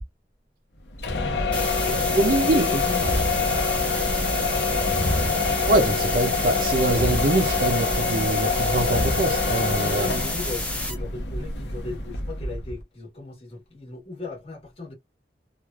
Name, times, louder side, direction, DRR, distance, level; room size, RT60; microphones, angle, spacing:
sound 1, 0.9-12.8, left 3 dB, 75° left, 0.8 m, -25 dB
voice 1, 1.5-3.1 9.7-14.9, left 2 dB, 30° left, 1.2 m, -37 dB
sound 2, 1.5-10.9, left 1 dB, 5° left, 0.7 m, -31 dB
voice 2, 2.2-2.7 5.7-10.1, right 2 dB, 50° right, 0.5 m, -24 dB
3.1 x 2.3 x 2.3 m
head